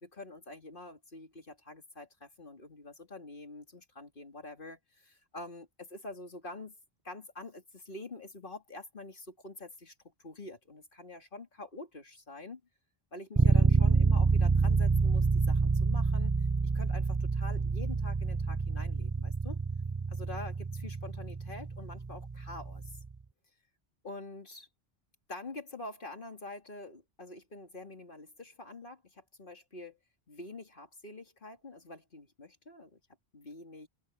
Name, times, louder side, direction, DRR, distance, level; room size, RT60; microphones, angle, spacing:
voice 1, 0.0-6.8 7.0-9.9 10.2-12.6 13.1-16.4 16.7-19.6 20.1-22.8 24.0-24.7 25.3-30.0 30.3-33.0 33.3-33.9, left 2 dB, 55° left, 2.9 m, -46 dB
sound 1, 13.4-23.1, right 4 dB, 25° right, 0.5 m, -28 dB
open air
omnidirectional pair, 1.0 m